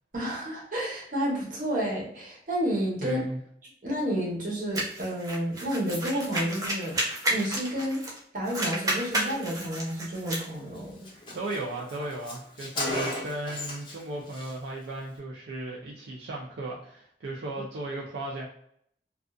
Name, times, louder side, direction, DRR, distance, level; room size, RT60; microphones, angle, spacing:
voice 1, 0.1-3.2 3.8-7.0 7.3-8.1 8.3-11.1, equal, 50° right, -4 dB, 0.9 m, -30 dB
voice 2, 3.0-3.4 11.1-18.5, right 2 dB, 75° right, -3 dB, 0.4 m, -36 dB
sound 1, 4.7-8.2 8.4-10.5, right 1 dB, 20° right, 0.5 m, -31 dB
Car, 10.3-10.5 10.8-10.9 11.0-14.0 14.3-14.5, left 1 dB, 25° left, 0.5 m, -35 dB
2.4 x 2.3 x 2.3 m, 0.68 s
head